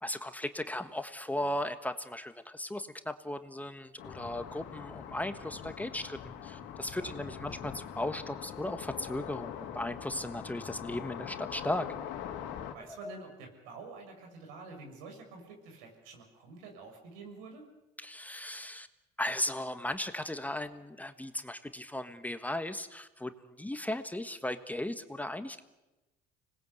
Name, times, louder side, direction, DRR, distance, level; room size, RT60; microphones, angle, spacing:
voice 1, 0.0-11.9 12.9-13.1 18.0-18.9 19.2-25.6, left 1 dB, 10° left, 9 dB, 1.3 m, -37 dB
sound 1, 4.0-12.7, left 9 dB, 75° left, 2.4 m, -43 dB
voice 2, 6.9-7.5 12.7-17.6, right 3 dB, 85° right, 3 dB, 6.6 m, -48 dB
25.5 x 19.5 x 8.1 m, 1.1 s
supercardioid pair, 95°, 20 cm